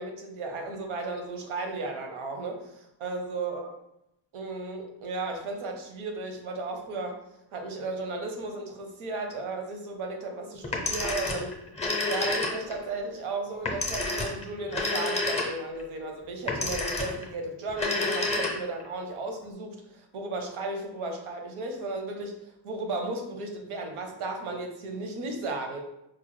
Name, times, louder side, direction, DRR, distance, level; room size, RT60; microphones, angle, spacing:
voice 1, 0.0-3.7 4.3-7.2 7.5-11.6 12.1-25.8, right 3 dB, 80° right, 3 dB, 0.8 m, -35 dB
Telephone, 10.6-12.8 13.7-15.8 16.5-17.3 17.7-18.9, left 2 dB, 15° left, 0.5 m, -29 dB
4.6 x 2.1 x 3.1 m, 0.84 s
wide cardioid pair, 165°, 49 cm